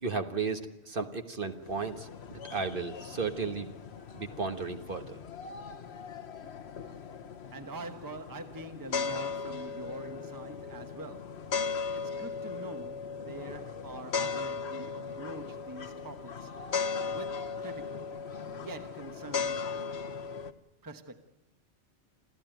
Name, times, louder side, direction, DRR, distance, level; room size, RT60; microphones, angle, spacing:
voice 1, 0.0-3.7 4.1-5.2, right 4 dB, 50° right, 1.5 m, -34 dB
sound 1, 1.5-20.5, left 5 dB, 65° left, 1.3 m, -38 dB
voice 2, 7.5-11.4 11.9-16.5 17.0-18.1 18.4-19.7 20.8-21.2, right 2 dB, 20° right, 1.1 m, -44 dB
27.0 x 15.0 x 9.2 m
omnidirectional pair, 1.2 m